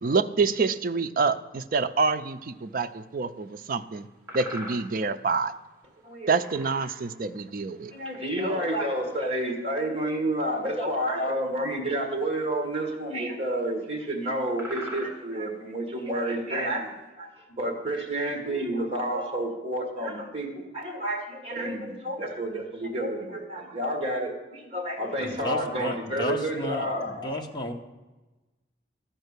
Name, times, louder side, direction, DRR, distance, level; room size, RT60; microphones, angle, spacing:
voice 1, 0.0-4.1 4.3-5.5 6.3-7.9, right 4 dB, 50° right, 10 dB, 0.5 m, -27 dB
sound 1, 2.2-2.3 3.8-3.9 4.3-5.0 5.4-5.5 6.3-7.2 8.4-8.5 8.8-9.2 10.4-10.5 12.1-12.3 12.6-12.8 13.4-13.7 14.1-14.3 14.6-15.4 16.5-16.6, right 1 dB, 15° right, 1.6 m, -41 dB
voice 2, 7.9-16.9 17.2-27.4, right 1 dB, 35° right, 3 dB, 1.7 m, -30 dB
voice 3, 25.2-27.7, left 1 dB, 25° left, 2 dB, 0.9 m, -33 dB
13.0 x 4.5 x 8.1 m, 1.1 s
head